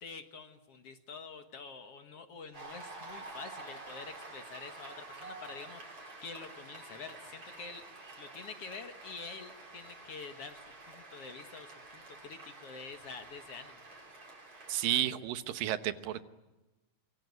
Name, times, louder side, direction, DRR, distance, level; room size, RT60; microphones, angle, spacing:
voice 1, 0.0-7.9 8.2-13.8, left 5 dB, 55° left, 7 dB, 2.0 m, -47 dB
Cheering / Applause, 2.5-15.0, right 2 dB, 40° right, 6.7 m, -49 dB
voice 2, 14.7-16.2, right 12 dB, 90° right, 11 dB, 2.8 m, -32 dB
25.0 x 23.5 x 9.5 m, 1.1 s
omnidirectional pair, 3.9 m